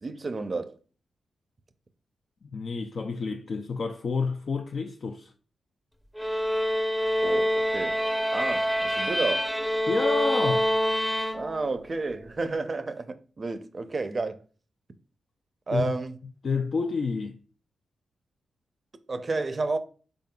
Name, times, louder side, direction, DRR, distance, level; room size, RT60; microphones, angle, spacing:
voice 1, 0.0-0.8 7.2-8.0 8.3-9.5 11.3-14.4 15.7-16.2 19.1-19.8, right 3 dB, 45° right, 0.5 m, -31 dB
voice 2, 2.4-5.3 9.9-10.7 15.7-15.9 16.4-17.4, left 4 dB, 60° left, 0.4 m, -29 dB
sound 1, 6.2-11.8, equal, 5° left, 0.6 m, -26 dB
3.9 x 3.7 x 2.2 m
supercardioid pair, 45°, 0 cm